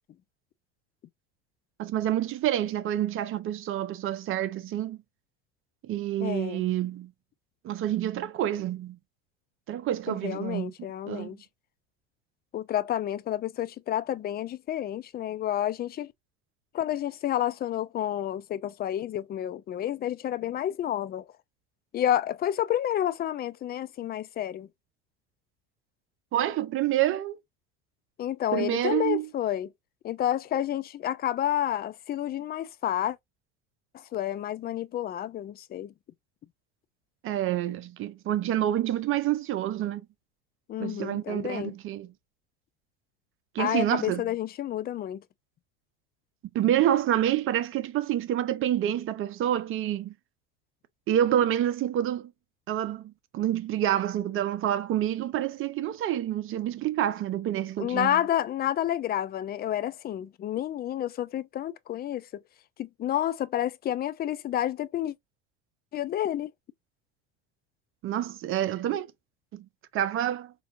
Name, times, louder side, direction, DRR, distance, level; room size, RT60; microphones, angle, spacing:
voice 1, 1.8-5.0 5.8-7.1 7.6-9.0 9.7-10.7 11.1-11.4 26.3-27.4 28.5-29.3 37.2-40.1 40.8-42.1 43.5-44.2 46.5-50.1 51.1-52.3 52.7-58.2 68.0-69.1 69.5-69.6 69.9-70.5, right 11 dB, 45° right, 0.7 m, -28 dB
voice 2, 6.2-6.6 10.1-11.4 12.5-16.1 16.7-21.3 21.9-24.7 28.2-29.7 30.0-33.2 33.9-35.9 40.7-41.7 43.6-45.2 57.8-62.3 62.8-65.1 65.9-66.5, left 11 dB, 30° left, 0.5 m, -30 dB
4.4 x 2.7 x 2.5 m
hypercardioid pair, 75°, 30 cm